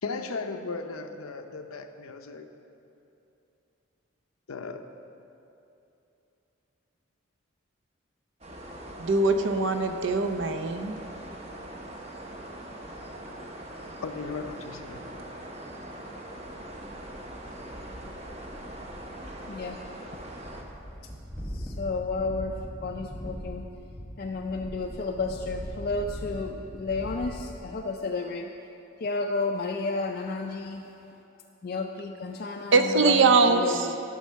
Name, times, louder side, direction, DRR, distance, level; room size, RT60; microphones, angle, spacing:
voice 1, 0.0-2.5 4.5-4.9 14.0-15.0, left 4 dB, 90° left, 7 dB, 0.6 m, -36 dB
sound 1, 8.4-20.6, right 1 dB, 30° right, 0.9 m, -42 dB
voice 2, 9.0-11.0 32.7-33.7, right 3 dB, 60° right, 8 dB, 0.6 m, -22 dB
sound 2, 16.5-27.6, equal, ahead, 1.1 m, -41 dB
voice 3, 19.5-19.8 21.5-23.7 24.2-28.5 29.0-30.9 31.6-34.0, left 3 dB, 45° left, 2 dB, 0.4 m, -32 dB
11.0 x 5.4 x 6.4 m, 2.8 s
head